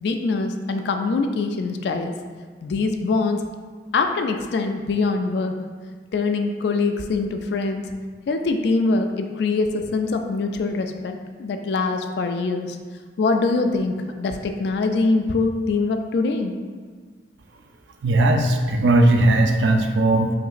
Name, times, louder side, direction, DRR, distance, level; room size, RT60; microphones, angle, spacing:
voice 1, 0.0-2.2 2.6-3.5 3.9-5.6 6.1-7.9 8.3-12.8 13.2-16.6, left 3 dB, 65° left, 6 dB, 0.3 m, -23 dB
voice 2, 18.0-20.3, right 1 dB, 80° right, 4 dB, 0.4 m, -18 dB
5.1 x 3.0 x 2.4 m, 1.5 s
head